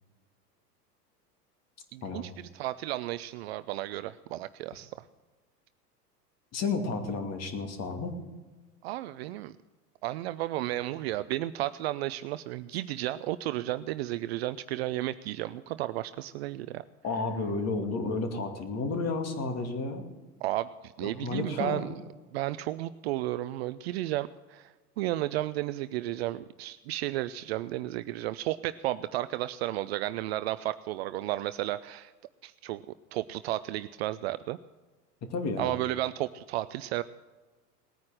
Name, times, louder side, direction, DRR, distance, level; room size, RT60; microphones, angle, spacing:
voice 1, 1.9-5.0 8.8-9.6 10.0-16.8 20.4-21.9 22.3-32.1 32.4-32.8 33.1-34.6 35.6-37.0, right 15 dB, 40° right, 15 dB, 0.5 m, -33 dB
voice 2, 6.5-8.2 17.0-20.0 21.0-21.9 35.3-35.7, left 3 dB, 30° left, 5 dB, 2.5 m, -32 dB
19.0 x 9.5 x 6.4 m, 1.3 s
figure-of-eight pair, 90°, 49 cm